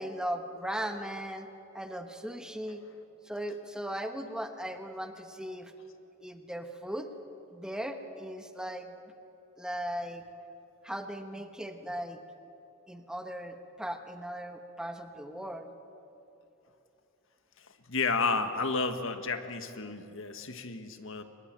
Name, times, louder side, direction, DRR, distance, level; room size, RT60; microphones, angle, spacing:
voice 1, 0.0-1.5 1.7-2.8 3.2-5.7 6.2-7.1 7.5-8.9 9.6-10.2 10.8-12.2 12.9-15.7, equal, 5° right, 6 dB, 1.3 m, -38 dB
voice 2, 17.9-21.2, left 4 dB, 65° left, 8 dB, 1.6 m, -31 dB
24.0 x 21.5 x 8.9 m, 3.0 s
head